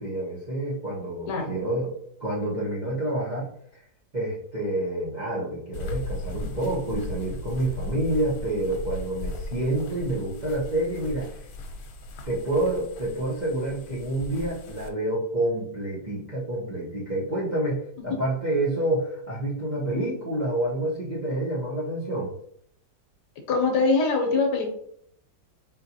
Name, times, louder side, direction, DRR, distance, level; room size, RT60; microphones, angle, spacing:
voice 1, 0.0-1.9 2.2-3.5 4.1-11.4 12.2-22.3, right 1 dB, 40° right, -7 dB, 0.6 m, -28 dB
sound 1, 5.7-14.9, left 2 dB, 85° left, 1.4 m, -37 dB
voice 2, 23.5-24.7, left 3 dB, 70° left, 3 dB, 1.3 m, -23 dB
3.9 x 3.8 x 2.7 m, 0.68 s
omnidirectional pair, 1.9 m